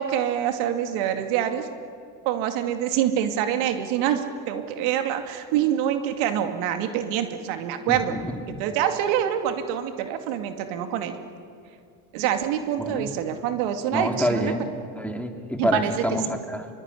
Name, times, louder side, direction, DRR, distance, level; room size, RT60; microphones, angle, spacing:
voice 1, 0.0-1.7 2.3-8.2 8.6-11.2 12.1-14.5 15.6-16.0, right 10 dB, 75° right, 7 dB, 2.5 m, -26 dB
voice 2, 7.9-8.6 12.8-13.1 13.9-14.7 15.0-16.7, equal, 5° left, 5 dB, 2.8 m, -27 dB
24.0 x 23.0 x 10.0 m, 2.4 s
supercardioid pair, 95°, 50 cm